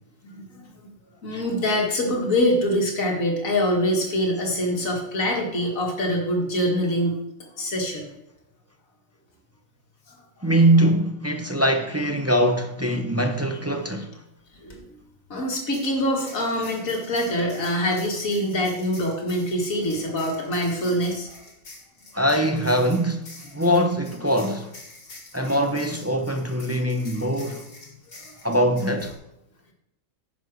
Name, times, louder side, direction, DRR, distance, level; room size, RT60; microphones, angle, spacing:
voice 1, 0.2-0.9 1.2-7.2 7.6-8.1 10.1-10.2 14.6-14.9 15.3-21.3, equal, 85° left, 2.2 m, -24 dB
voice 2, 10.4-14.2 22.1-24.7 25.3-27.6 28.4-29.1, right 1 dB, 20° right, 0.4 m, -22 dB
sound 1, 14.5-14.8 15.5-29.2, left 2 dB, 55° left, 2.1 m, -46 dB
9.9 x 5.3 x 6.2 m
omnidirectional pair, 1.4 m